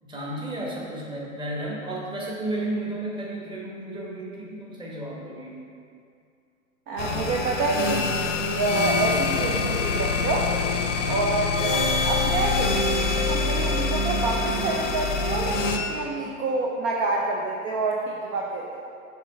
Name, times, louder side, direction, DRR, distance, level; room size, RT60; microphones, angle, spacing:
voice 1, 0.0-5.6 7.0-7.3 10.9-11.2, right 1 dB, 10° right, -4 dB, 1.1 m, -33 dB
voice 2, 6.9-8.1 8.5-10.5 11.1-12.7 13.3-18.9, right 3 dB, 25° right, -1 dB, 0.5 m, -27 dB
sound 1, 7.0-15.8, left 4 dB, 60° left, 0.8 m, -25 dB
6.1 x 3.7 x 5.3 m, 2.4 s
hypercardioid pair, 110°, 41 cm